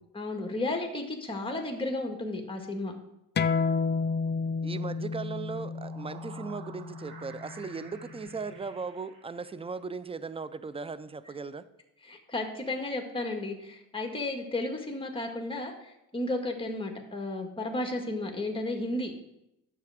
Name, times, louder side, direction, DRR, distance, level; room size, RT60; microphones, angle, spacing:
voice 1, 0.1-2.9 12.0-19.1, left 2 dB, 15° left, 2 dB, 1.9 m, -33 dB
sound 1, 3.4-8.5, left 5 dB, 30° left, 0.4 m, -31 dB
voice 2, 4.6-11.7, right 4 dB, 15° right, 15 dB, 0.5 m, -38 dB
sound 2, 5.6-9.9, right 4 dB, 90° right, 2.2 m, -51 dB
9.6 x 6.9 x 5.0 m, 0.86 s
supercardioid pair, 70°, 36 cm